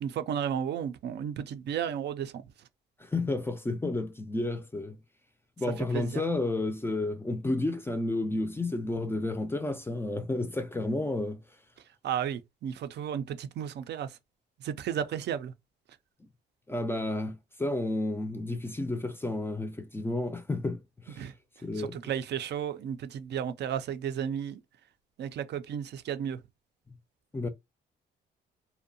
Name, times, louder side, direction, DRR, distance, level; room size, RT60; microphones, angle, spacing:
voice 1, 0.0-2.4 5.8-6.2 12.0-14.2 14.6-15.5 21.2-21.3 21.7-24.6 25.2-26.4, right 9 dB, 60° right, 0.4 m, -33 dB
voice 2, 3.0-5.0 5.6-11.4 16.7-20.8 21.1-21.2 21.6-22.0 27.3-27.5, left 2 dB, 10° left, 0.3 m, -31 dB
2.6 x 2.1 x 2.6 m
cardioid pair, 90°, 20 cm